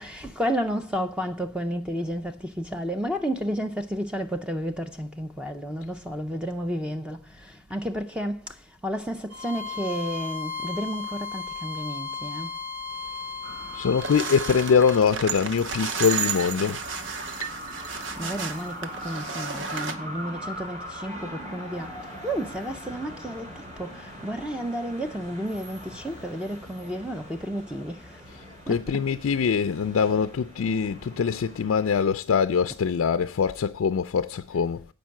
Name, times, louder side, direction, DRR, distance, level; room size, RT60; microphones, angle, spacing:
voice 1, 0.0-8.5 8.8-12.5 18.2-21.9 22.2-23.5 23.8-28.2 28.7-28.8, equal, 5° right, 0.5 m, -31 dB
Bowed string instrument, 9.3-15.0, left 5 dB, 75° right, 1.9 m, -35 dB
sound 1, 13.4-32.0, equal, 35° right, 2.9 m, -41 dB
voice 2, 13.7-17.0 17.4-17.5 28.3-34.9, left 6 dB, 70° left, 0.4 m, -24 dB
sound 2, 14.0-20.0, right 6 dB, 60° right, 0.9 m, -33 dB
8.2 x 5.2 x 7.5 m
head